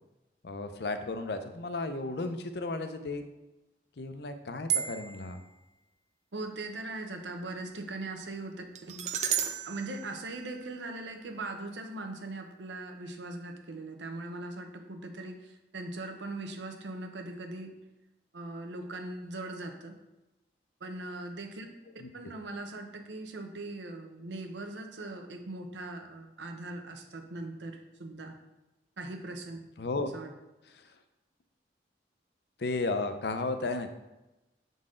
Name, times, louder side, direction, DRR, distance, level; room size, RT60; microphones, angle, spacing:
voice 1, 0.4-3.2 4.0-5.4 22.0-22.1 29.8-30.1 32.6-33.9, left 3 dB, 70° left, 8 dB, 0.6 m, -34 dB
sound 1, 4.7-5.3 8.8-11.0, right 8 dB, 40° right, 0.4 m, -34 dB
voice 2, 6.3-9.1 9.6-17.7 18.3-20.0 20.8-21.7 22.1-28.4 29.0-29.6 30.1-30.3, right 2 dB, 90° right, 5 dB, 0.8 m, -40 dB
7.6 x 4.0 x 3.7 m, 1.0 s
head